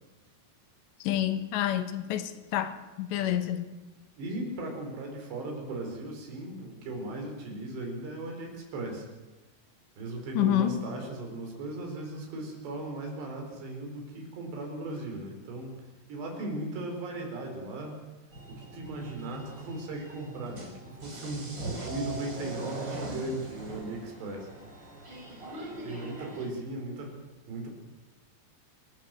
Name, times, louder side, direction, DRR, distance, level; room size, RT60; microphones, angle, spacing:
voice 1, 1.0-3.7 10.4-10.8, left 12 dB, 90° left, 10 dB, 3.6 m, -28 dB
voice 2, 4.2-9.1 10.0-15.8 16.1-18.0 18.5-24.5 25.7-27.2 27.5-27.7, right 2 dB, 80° right, 2 dB, 6.9 m, -37 dB
sound 1, 18.3-26.5, right 2 dB, 25° right, 4.6 m, -41 dB
28.5 x 17.0 x 7.8 m, 1.1 s
omnidirectional pair, 4.8 m